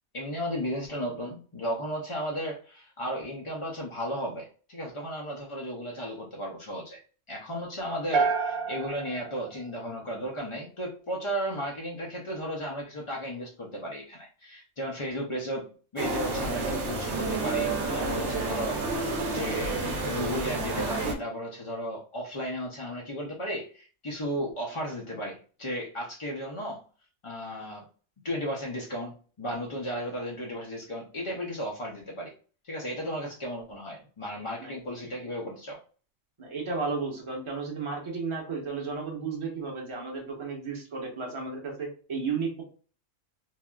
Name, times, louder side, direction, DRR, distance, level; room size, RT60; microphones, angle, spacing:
voice 1, 0.1-7.0 7.3-26.8 27.2-27.9 28.2-32.3 32.6-35.8, equal, 55° left, -2 dB, 0.3 m, -35 dB
sound 1, 8.1-10.4, right 4 dB, 85° right, 1.0 m, -30 dB
sound 2, 16.0-21.2, right 3 dB, 65° right, 0.8 m, -30 dB
voice 2, 36.4-42.6, right 4 dB, 30° right, 0 dB, 0.7 m, -33 dB
3.2 x 2.4 x 2.2 m, 0.39 s
omnidirectional pair, 1.4 m